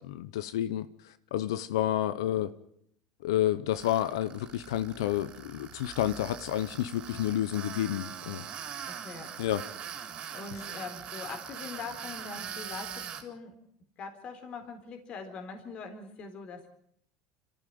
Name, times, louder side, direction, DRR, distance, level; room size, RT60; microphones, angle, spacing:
voice 1, 0.0-2.5 3.2-8.4 9.4-9.6 10.5-10.6, left 12 dB, 85° left, 0.9 m, -30 dB
Tools, 3.7-13.2, right 8 dB, 45° right, 3.6 m, -42 dB
voice 2, 8.8-9.3 10.3-13.6 14.0-16.7, left 4 dB, 45° left, 4.0 m, -42 dB
26.0 x 15.0 x 9.5 m
supercardioid pair, 110°, 3 cm